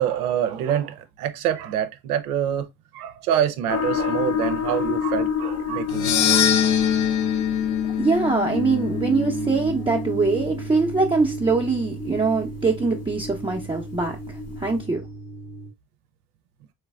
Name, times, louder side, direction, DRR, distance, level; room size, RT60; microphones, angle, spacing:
voice 1, 0.0-2.7 2.9-6.5, right 10 dB, 80° right, 0.6 m, -26 dB
sound 1, 3.7-14.8, left 7 dB, 35° left, 0.9 m, -31 dB
sound 2, 5.9-10.2, left 8 dB, 65° left, 0.7 m, -24 dB
voice 2, 8.0-14.2 14.6-15.0, right 4 dB, 10° right, 0.6 m, -23 dB
sound 3, 8.5-15.7, right 2 dB, 85° left, 1.3 m, -33 dB
3.9 x 3.1 x 2.3 m
figure-of-eight pair, 45°, 44 cm